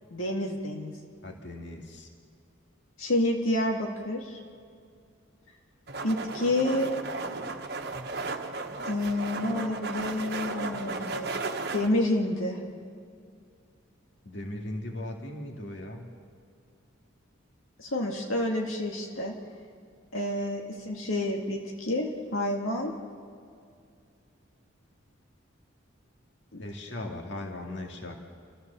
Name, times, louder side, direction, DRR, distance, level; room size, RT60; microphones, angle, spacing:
voice 1, 0.1-0.9 3.0-4.4 6.0-6.9 8.8-11.4 11.7-12.6 17.8-19.3 20.1-22.9 26.5-26.6, left 1 dB, 85° left, 1 dB, 2.1 m, -29 dB
voice 2, 1.2-2.1 14.2-16.1 26.6-28.2, left 1 dB, 60° left, 1 dB, 2.2 m, -38 dB
sound 1, 5.9-11.9, right 3 dB, 50° right, 1.2 m, -35 dB
29.5 x 14.5 x 6.9 m, 2.3 s
head